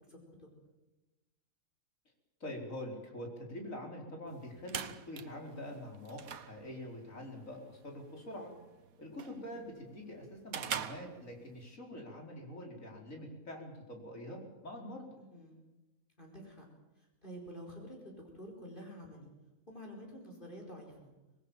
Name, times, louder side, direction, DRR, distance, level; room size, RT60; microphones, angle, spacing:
voice 1, 0.1-0.5 9.4-9.6 15.3-15.6 16.2-16.7 17.0-19.3 19.7-21.1, equal, 35° left, 0 dB, 4.8 m, -49 dB
voice 2, 2.4-6.2 6.5-8.5 9.0-15.1, left 1 dB, 70° left, 1 dB, 5.2 m, -45 dB
sound 1, 4.3-11.8, right 8 dB, 85° right, 1.5 m, -45 dB
25.5 x 20.0 x 7.5 m, 1.1 s
omnidirectional pair, 1.4 m